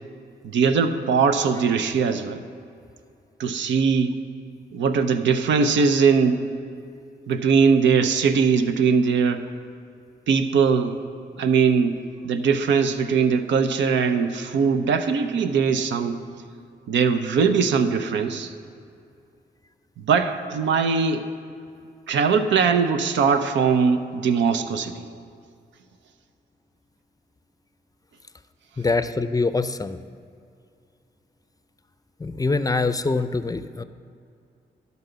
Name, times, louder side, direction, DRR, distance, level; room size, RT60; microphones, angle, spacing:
voice 1, 0.4-2.4 3.4-4.1 4.7-6.4 7.3-9.5 10.3-11.0 11.4-12.0 12.2-16.2 16.9-18.5 20.0-21.3 22.1-25.1, right 5 dB, 85° right, 9 dB, 0.6 m, -21 dB
voice 2, 28.8-30.0 32.2-33.8, left 3 dB, 20° left, 11 dB, 0.4 m, -24 dB
12.0 x 4.1 x 6.7 m, 2.4 s
supercardioid pair, 50°, 19 cm